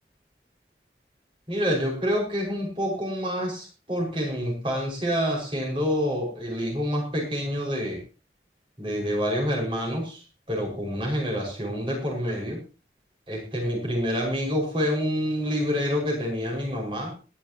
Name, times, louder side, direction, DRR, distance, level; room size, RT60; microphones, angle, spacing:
voice 1, 1.5-8.0 8.8-10.2 10.5-12.6 13.3-17.1, equal, 30° right, -1 dB, 5.9 m, -27 dB
22.0 x 9.9 x 3.0 m, 0.31 s
head